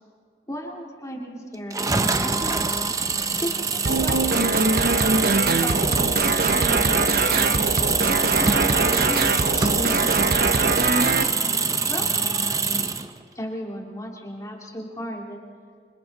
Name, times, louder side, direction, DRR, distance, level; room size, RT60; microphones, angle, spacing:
voice 1, 0.5-2.6 3.3-4.9 5.6-7.8 8.3-10.6 11.9-12.1 13.3-15.4, equal, 20° left, -1 dB, 2.6 m, -35 dB
sound 1, 1.7-13.1, right 5 dB, 20° right, 0.7 m, -24 dB
sound 2, 3.9-11.2, right 3 dB, 55° right, 1.0 m, -22 dB
27.0 x 26.5 x 4.2 m, 2.1 s
head